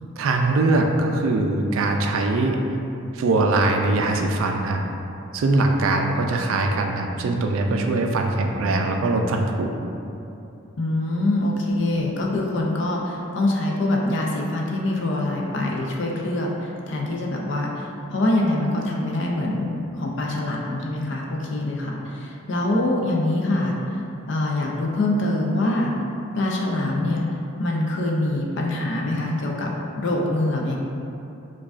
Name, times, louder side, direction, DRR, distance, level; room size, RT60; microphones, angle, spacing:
voice 1, 0.2-2.6 3.1-4.8 5.3-9.7, right 2 dB, 75° right, 3 dB, 0.3 m, -22 dB
voice 2, 10.8-24.0 24.3-25.9 26.3-27.3 27.6-29.7 30.0-30.8, left 1 dB, 60° left, -1 dB, 0.5 m, -24 dB
4.7 x 2.3 x 2.4 m, 2.7 s
head